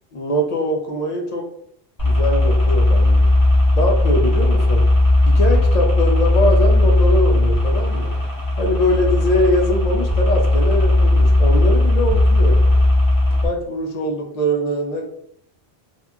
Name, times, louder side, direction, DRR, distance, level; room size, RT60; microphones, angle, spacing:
voice 1, 0.1-1.4 2.0-3.3 3.8-4.8 5.3-8.2 8.6-12.6 13.4-15.0, left 1 dB, 50° left, 1 dB, 0.5 m, -22 dB
sound 1, 2.0-13.5, left 1 dB, 20° left, 0.8 m, -16 dB
2.8 x 2.5 x 2.2 m, 0.70 s
omnidirectional pair, 1.0 m